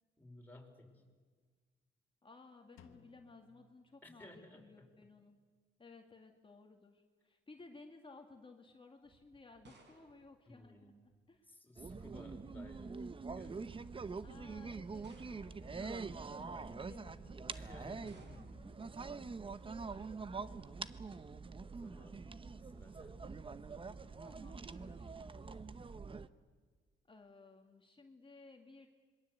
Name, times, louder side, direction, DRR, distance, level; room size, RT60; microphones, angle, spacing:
voice 1, 0.2-1.0 4.0-4.9 10.5-11.0 11.5-13.8 15.7-16.0 17.5-18.4 21.6-22.2 22.6-23.4, left 1 dB, 10° left, 1 dB, 5.1 m, -57 dB
voice 2, 2.2-5.4 5.8-10.9 11.3-11.5 14.2-18.9 19.8-20.6 24.2-25.2 27.1-28.9, left 3 dB, 25° left, 3 dB, 2.2 m, -58 dB
Drum, 2.8-4.7, left 7 dB, 85° left, 1.5 m, -65 dB
sound 1, 9.0-11.4 12.4-12.9 13.7-13.8 15.0-15.8 18.1-18.8, right 3 dB, 60° right, 5.0 m, -64 dB
sound 2, 11.8-26.3, right 4 dB, 25° right, 0.9 m, -45 dB
26.5 x 22.0 x 8.1 m, 1.5 s
cardioid pair, 90°, 20 cm